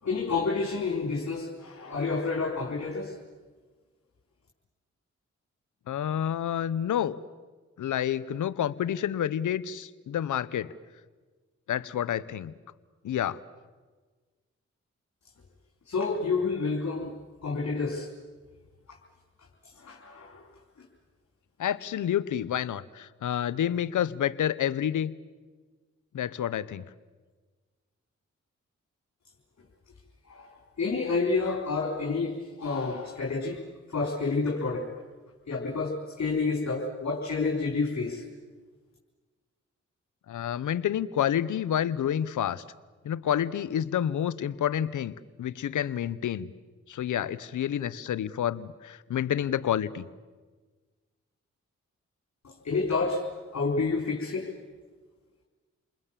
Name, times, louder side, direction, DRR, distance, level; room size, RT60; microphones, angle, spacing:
voice 1, 0.0-3.2 15.9-17.1 17.4-18.1 18.9-19.0 19.7-20.4 30.3-30.5 30.8-33.6 33.9-34.9 35.5-38.2 52.4-54.5, left 4 dB, 65° left, -2 dB, 4.3 m, -29 dB
voice 2, 5.9-7.2 7.8-10.7 11.7-12.5 13.0-13.4 21.6-25.1 26.1-26.8 40.3-42.6 43.0-45.1 45.4-46.5 46.9-50.0, left 10 dB, 85° left, 17 dB, 0.9 m, -29 dB
30.0 x 21.0 x 7.5 m, 1.4 s
supercardioid pair, 45°, 30 cm